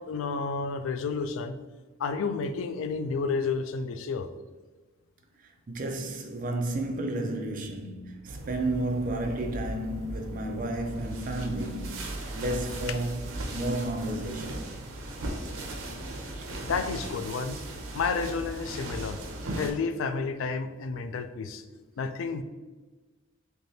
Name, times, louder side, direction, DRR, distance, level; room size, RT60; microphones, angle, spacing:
voice 1, 0.1-1.6 2.0-4.3 16.6-17.6 17.9-19.2 19.6-21.6 22.0-22.4, left 4 dB, 80° left, 0.3 m, -31 dB
voice 2, 5.4-13.2 13.5-14.7 16.4-16.5, right 1 dB, 40° right, 0.4 m, -32 dB
sound 1, 8.3-19.7, right 1 dB, 85° right, 0.6 m, -37 dB
3.3 x 3.2 x 2.7 m
head